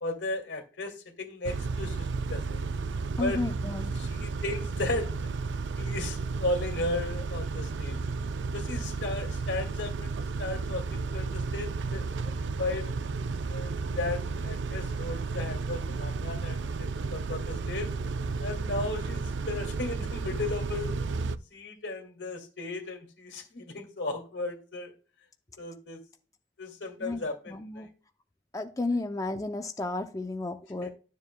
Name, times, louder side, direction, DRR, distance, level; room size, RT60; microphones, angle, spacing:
voice 1, 0.0-2.6 3.2-5.3 5.8-8.0 8.5-12.9 13.5-17.9 18.4-21.0 21.5-24.9 25.6-26.0 26.6-27.9 30.8-30.9, left 2 dB, 90° left, 2.1 m, -35 dB
Car / Idling / Accelerating revving vroom, 1.4-21.4, right 4 dB, 90° right, 0.4 m, -33 dB
voice 2, 3.2-3.9 27.0-27.9 28.5-30.9, left 2 dB, 20° left, 0.5 m, -33 dB
12.5 x 7.2 x 2.2 m
head